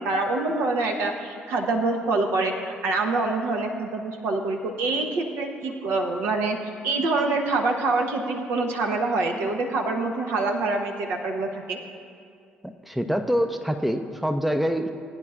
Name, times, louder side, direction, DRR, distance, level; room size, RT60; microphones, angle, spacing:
voice 1, 0.0-6.6 6.8-11.8, right 3 dB, 60° right, 3 dB, 1.0 m, -25 dB
voice 2, 12.6-14.9, equal, 5° right, 7 dB, 0.6 m, -25 dB
20.5 x 9.7 x 2.5 m, 2.3 s
figure-of-eight pair, 45°, 5 cm